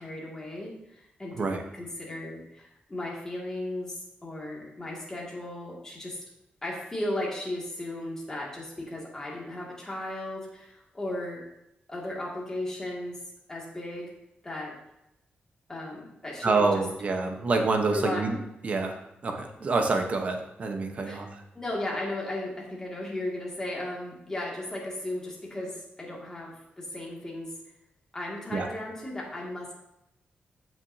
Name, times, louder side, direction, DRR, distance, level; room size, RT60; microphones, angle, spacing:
voice 1, 0.0-6.2 6.6-11.4 11.9-13.2 13.5-14.1 14.4-14.7 15.7-16.9 17.8-18.3 21.0-21.2 21.5-27.5 28.1-29.7, left 1 dB, 15° left, -3 dB, 2.3 m, -36 dB
voice 2, 16.4-18.4 18.6-19.0 19.2-21.3 28.5-28.7, right 3 dB, 40° right, 4 dB, 1.1 m, -27 dB
15.0 x 6.2 x 2.8 m, 0.85 s
wide cardioid pair, 180°, 4 cm